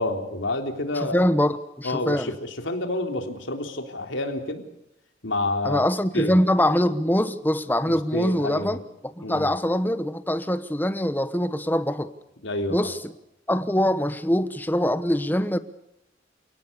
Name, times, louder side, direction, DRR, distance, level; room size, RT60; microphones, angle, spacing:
voice 1, 0.0-1.3 1.8-4.6 5.2-5.9 6.1-6.4 7.9-8.8 9.2-9.5 12.4-12.9, left 2 dB, 80° left, 4 dB, 3.6 m, -29 dB
voice 2, 0.9-2.3 5.6-12.1 12.7-13.1 13.5-15.6, left 1 dB, 10° left, 12 dB, 1.0 m, -23 dB
29.5 x 18.5 x 6.9 m, 0.84 s
head